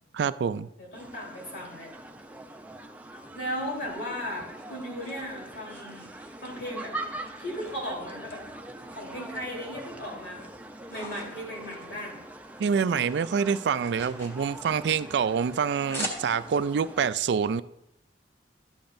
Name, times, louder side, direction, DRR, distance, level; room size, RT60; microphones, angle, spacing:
voice 1, 0.1-0.7 12.6-17.6, right 6 dB, 70° right, 0.3 m, -26 dB
voice 2, 0.8-1.9 3.3-6.1 6.4-6.9 7.4-8.4 9.0-10.5 10.9-12.2, equal, 75° left, 3.7 m, -36 dB
sound 1, 0.9-17.1, right 2 dB, 10° right, 0.5 m, -43 dB
sound 2, 3.9-6.8 7.2-8.4 8.7-9.7 10.1-12.7 12.9-16.7, equal, 15° left, 1.5 m, -43 dB
12.5 x 8.7 x 2.6 m
head